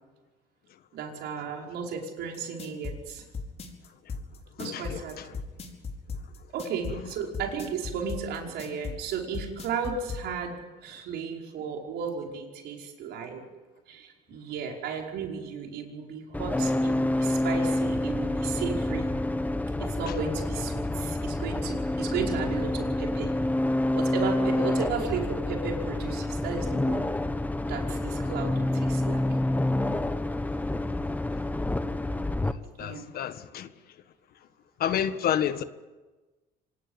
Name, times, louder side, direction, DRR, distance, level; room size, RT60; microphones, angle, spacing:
voice 1, 0.9-3.2 4.6-5.2 6.5-10.6 10.8-13.5 13.9-19.2 19.8-23.3 23.9-27.1 27.6-29.2 32.8-33.1, right 6 dB, 80° right, 5.3 m, -34 dB
sound 1, 2.3-10.2, left 4 dB, 40° left, 4.8 m, -36 dB
voice 2, 4.6-5.0 32.8-33.7 34.8-35.6, left 9 dB, 65° left, 1.6 m, -29 dB
sound 2, 16.3-32.5, left 1 dB, 10° left, 1.2 m, -28 dB
26.5 x 19.0 x 9.7 m
cardioid pair, 110°, 17 cm